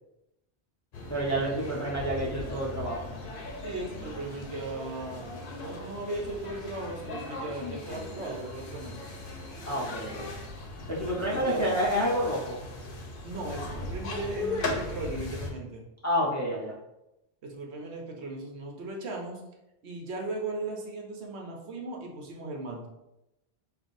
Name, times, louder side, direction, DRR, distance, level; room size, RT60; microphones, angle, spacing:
sound 1, 0.9-15.5, left 2 dB, 60° left, 0.8 m, -38 dB
voice 1, 1.1-3.0 9.7-10.3 10.9-12.6 16.0-16.7, equal, 20° left, -6 dB, 0.6 m, -29 dB
voice 2, 3.5-5.3 5.6-9.1 11.3-11.6 13.2-15.8 17.4-19.4 19.8-22.9, right 2 dB, 75° right, 0 dB, 1.0 m, -37 dB
5.6 x 2.5 x 2.6 m, 0.91 s
omnidirectional pair, 1.1 m